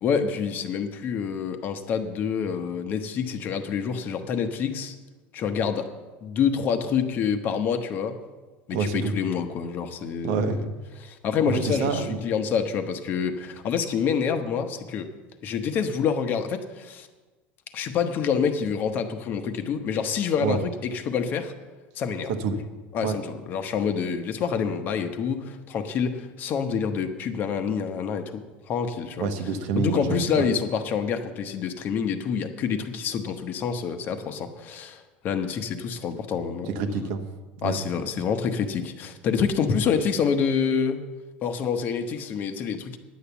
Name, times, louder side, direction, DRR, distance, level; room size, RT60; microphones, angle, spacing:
voice 1, 0.0-5.0 5.3-5.9 6.2-8.2 8.7-10.7 11.0-15.1 15.4-17.1 17.7-21.5 21.9-22.3 22.9-29.3 29.7-36.7 37.6-41.0 41.4-43.0, left 6 dB, 35° left, 7 dB, 0.9 m, -27 dB
voice 2, 8.7-9.2 10.2-10.6 11.5-12.2 20.4-20.6 22.3-22.6 23.0-23.2 29.2-30.5 36.7-37.3 37.6-37.8, right 5 dB, 65° right, 8 dB, 1.1 m, -27 dB
10.5 x 8.5 x 7.0 m, 1.3 s
cardioid pair, 155°, 5 cm